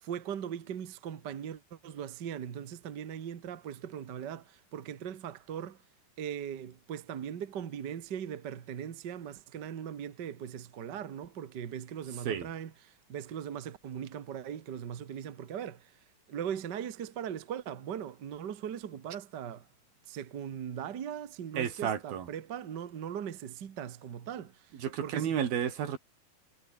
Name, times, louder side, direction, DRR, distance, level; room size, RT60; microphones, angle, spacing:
voice 1, 0.0-5.8 6.2-15.9 16.3-19.7 20.1-24.7 25.0-25.4, right 9 dB, 55° right, 1.2 m, -39 dB
voice 2, 21.6-22.3 24.8-26.0, right 8 dB, 80° right, 4.5 m, -32 dB
omnidirectional pair, 4.2 m